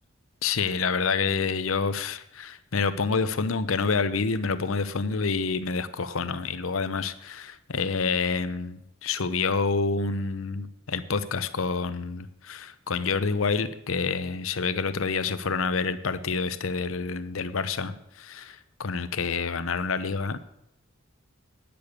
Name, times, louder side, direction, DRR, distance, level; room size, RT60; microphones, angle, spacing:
voice 1, 0.4-20.4, left 4 dB, 75° left, 12 dB, 0.8 m, -28 dB
10.0 x 6.9 x 8.1 m, 0.79 s
head